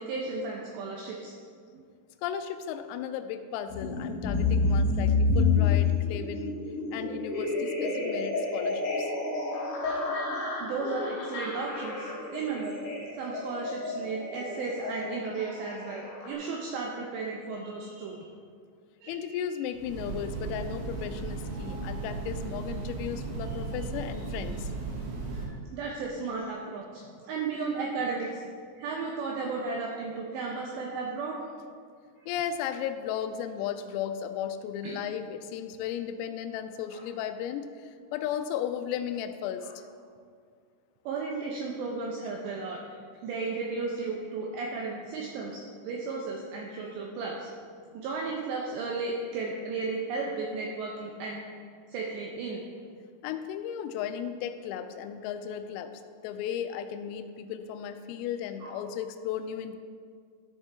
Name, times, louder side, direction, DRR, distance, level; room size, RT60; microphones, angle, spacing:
voice 1, 0.0-1.3 1.7-1.8 10.6-12.8 13.1-18.2 19.0-19.4 25.3-28.4 28.8-31.4 34.8-35.0 36.9-37.0 39.6-39.7 41.1-42.8 43.2-47.5 47.9-51.4 51.9-52.6 58.6-58.9, right 4 dB, 85° right, -1 dB, 2.5 m, -34 dB
voice 2, 2.2-6.6 6.9-9.2 19.1-24.7 32.3-39.7 53.2-59.8, left 9 dB, 85° left, 9 dB, 3.2 m, -35 dB
sound 1, 3.7-16.3, left 4 dB, 50° left, 3.9 m, -29 dB
Train, 19.7-25.5, right 4 dB, 65° right, 2.0 m, -36 dB
13.5 x 7.2 x 3.4 m, 2.1 s
omnidirectional pair, 6.0 m